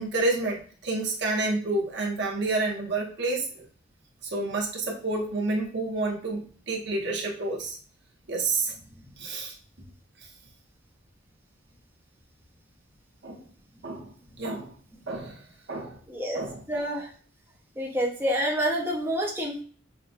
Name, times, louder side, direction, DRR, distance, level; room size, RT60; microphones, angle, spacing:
voice 1, 0.0-3.6 4.3-7.8 8.3-8.7 9.2-9.5 13.2-13.4 13.8-14.7 15.1-15.4 15.7-16.0 16.3-16.6, right 2 dB, 60° right, 0 dB, 0.9 m, -29 dB
voice 2, 16.1-16.4 16.7-17.1 17.8-19.6, equal, 10° right, -2 dB, 0.6 m, -28 dB
5.7 x 2.5 x 2.3 m, 0.43 s
head